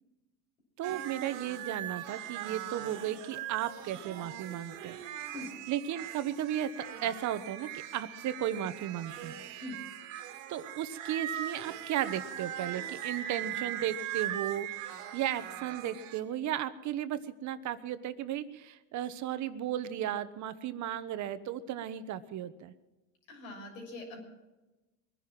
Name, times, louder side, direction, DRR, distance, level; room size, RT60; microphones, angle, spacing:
voice 1, 0.8-5.0 5.2-5.3 5.7-6.7 7.0-9.3 10.5-22.7, right 11 dB, 50° right, 12 dB, 1.2 m, -35 dB
sound 1, 0.8-16.2, right 11 dB, 80° right, 2.1 m, -40 dB
voice 2, 23.3-24.2, left 2 dB, 90° left, 1 dB, 6.7 m, -43 dB
22.0 x 10.5 x 6.1 m, 1.1 s
supercardioid pair, 105°, 38 cm